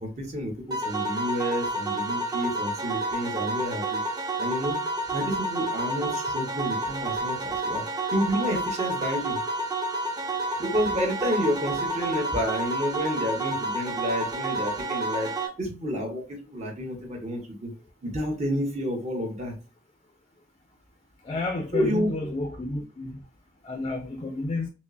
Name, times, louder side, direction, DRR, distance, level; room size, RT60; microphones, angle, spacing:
voice 1, 0.0-4.0 4.4-4.8 5.1-7.8 8.1-9.4 10.6-15.3 15.6-17.7 18.0-19.5 21.7-22.4, equal, 35° right, 1.0 m, -30 dB
sound 1, 0.7-15.5, right 2 dB, 20° right, 0.7 m, -30 dB
voice 2, 21.3-23.2 23.6-24.7, left 2 dB, 30° left, 0.4 m, -31 dB
5.9 x 2.0 x 2.5 m
head